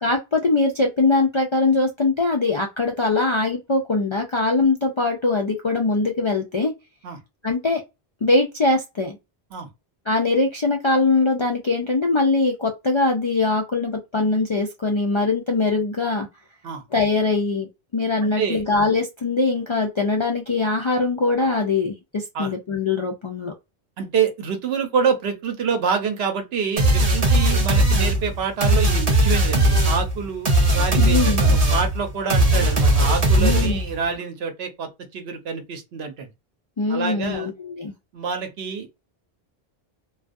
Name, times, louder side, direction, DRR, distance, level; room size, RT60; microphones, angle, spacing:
voice 1, 0.0-6.7 7.4-7.8 8.2-9.2 10.1-16.3 16.9-23.5 31.0-31.6 33.4-33.8 36.8-37.9, left 3 dB, 55° left, 0.3 m, -22 dB
voice 2, 18.2-18.6 22.3-22.5 24.0-36.3 36.9-37.5 38.1-38.9, right 6 dB, 75° right, 0.9 m, -27 dB
sound 1, 26.8-34.0, right 1 dB, 45° right, 0.7 m, -18 dB
2.3 x 2.3 x 2.5 m
omnidirectional pair, 1.1 m